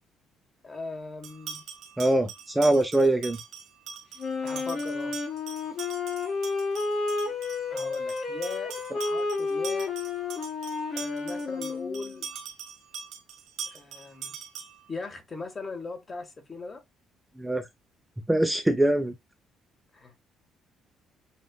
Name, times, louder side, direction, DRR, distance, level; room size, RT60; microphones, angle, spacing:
voice 1, 0.6-1.6 4.4-5.2 7.7-9.9 10.9-12.3 13.7-14.4 14.9-16.8 19.9-20.2, left 3 dB, 30° left, 1.4 m, -39 dB
sound 1, 1.2-14.9, right 6 dB, 80° right, 1.6 m, -43 dB
voice 2, 2.0-3.4 17.4-17.7 18.3-19.1, right 1 dB, 10° right, 0.6 m, -23 dB
Wind instrument woodwind instrument, 4.2-12.2, left 4 dB, 55° left, 2.2 m, -31 dB
7.5 x 2.5 x 2.3 m
cardioid pair, 90°, 0 cm